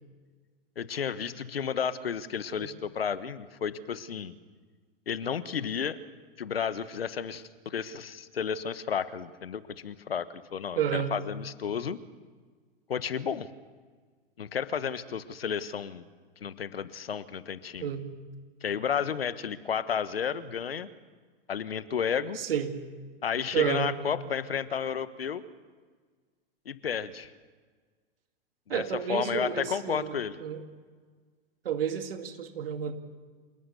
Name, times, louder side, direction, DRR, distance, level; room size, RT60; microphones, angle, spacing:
voice 1, 0.8-4.3 5.1-6.0 6.4-10.2 10.5-12.0 12.9-13.5 14.4-16.0 16.4-17.9 18.6-20.9 21.5-22.4 23.2-25.4 26.6-27.3 28.7-28.8 29.1-30.4, left 7 dB, 80° left, 15 dB, 1.3 m, -32 dB
voice 2, 10.8-11.1 17.8-18.0 22.4-22.7 23.5-23.9 28.7-30.6 31.6-32.9, right 9 dB, 70° right, 7 dB, 2.5 m, -30 dB
27.5 x 18.0 x 6.8 m, 1.5 s
hypercardioid pair, 100°, 29 cm